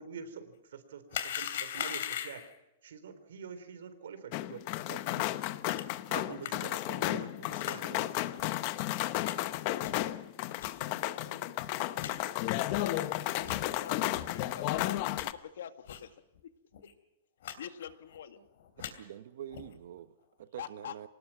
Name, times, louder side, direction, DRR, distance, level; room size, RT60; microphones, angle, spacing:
voice 1, 0.0-2.4 2.8-5.3 6.1-8.1, right 6 dB, 75° right, 3.8 m, -46 dB
sound 1, 1.1-2.6 5.8-5.9 6.4-6.5 7.6-7.8 8.4-8.5 9.2-9.3 9.8-10.1 10.6-10.7 11.3-11.4 11.6-11.7 12.0-12.1 12.7-12.8 13.4-13.6 14.1-14.3 14.7-15.2 15.9-16.1 16.4-16.5 16.7-16.9 17.4-17.6 17.8-18.2 18.6-18.9 19.5-19.8, left 10 dB, 60° left, 3.0 m, -39 dB
sound 2, 4.3-15.3, left 15 dB, 35° left, 0.8 m, -33 dB
voice 2, 12.7-16.1 17.6-18.4 20.6-21.1, left 9 dB, 80° left, 1.9 m, -46 dB
voice 3, 18.8-21.1, right 11 dB, 60° right, 1.0 m, -46 dB
24.5 x 19.5 x 6.0 m
supercardioid pair, 175°, 0 cm